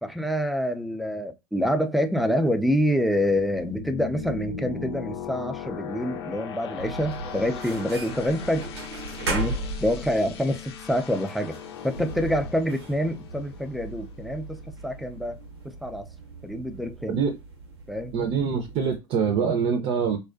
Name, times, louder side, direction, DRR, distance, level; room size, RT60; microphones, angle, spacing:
voice 1, 0.0-8.7 9.3-11.6 11.8-15.4 15.6-16.1 16.4-17.2 17.9-18.1, equal, ahead, 0.4 m, -27 dB
sound 1, 3.1-14.8, left 7 dB, 80° left, 0.6 m, -39 dB
sound 2, 6.8-19.0, right 2 dB, 85° right, 0.7 m, -37 dB
voice 2, 18.1-20.2, right 6 dB, 50° right, 0.6 m, -24 dB
2.3 x 2.2 x 2.4 m
hypercardioid pair, 85°, 13 cm